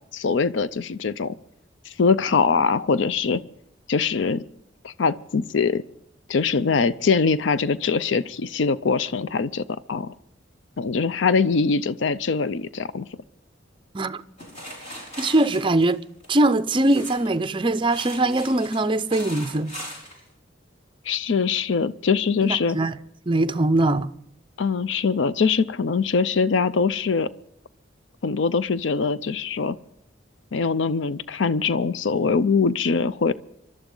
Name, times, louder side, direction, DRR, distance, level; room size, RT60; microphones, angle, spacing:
voice 1, 0.1-1.3 1.9-3.4 3.9-4.4 4.8-5.8 6.3-10.1 10.8-13.1 21.1-22.8 24.6-27.3 28.2-29.8 30.5-33.3, left 5 dB, 70° left, 0.5 m, -22 dB
Working with shovel, 14.4-17.4 17.8-20.2, equal, 40° left, 4.6 m, -39 dB
voice 2, 15.2-16.0 16.3-19.7 22.4-23.0 23.3-24.1, right 2 dB, 25° right, 0.5 m, -21 dB
27.5 x 12.5 x 3.8 m
head